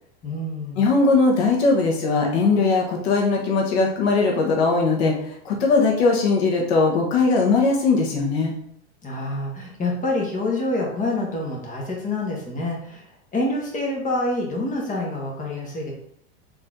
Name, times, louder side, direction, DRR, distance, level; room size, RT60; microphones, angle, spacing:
voice 1, 0.2-0.8 9.0-13.0 13.3-15.9, left 2 dB, 25° left, -1 dB, 1.5 m, -27 dB
voice 2, 0.8-5.1 5.4-8.5, left 3 dB, 75° left, -1 dB, 1.5 m, -19 dB
4.3 x 3.2 x 3.8 m, 0.68 s
supercardioid pair, 115°, 32 cm